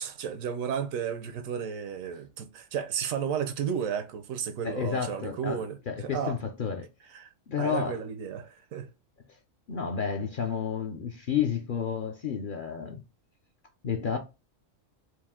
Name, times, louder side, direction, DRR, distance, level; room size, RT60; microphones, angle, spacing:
voice 1, 0.0-6.4 7.1-7.3 7.6-8.9, right 7 dB, 90° right, 1.1 m, -33 dB
voice 2, 4.6-6.9 7.5-8.0 9.7-13.0 13.8-14.2, left 7 dB, 55° left, 0.6 m, -31 dB
4.7 x 2.6 x 3.5 m
omnidirectional pair, 1.4 m